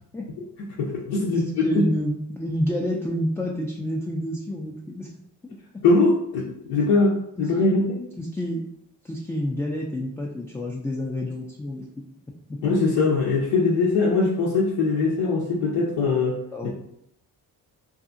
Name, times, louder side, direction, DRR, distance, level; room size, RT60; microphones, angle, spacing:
voice 1, 0.8-1.7 5.8-8.0 12.6-16.7, left 3 dB, 80° left, -4 dB, 0.6 m, -22 dB
voice 2, 1.3-5.1 5.4-5.8 7.4-7.8 8.2-8.6 9.0-12.2 12.5-12.6 16.5-16.7, equal, 5° left, -2 dB, 0.3 m, -29 dB
2.7 x 2.4 x 2.5 m, 0.75 s
supercardioid pair, 55°, 42 cm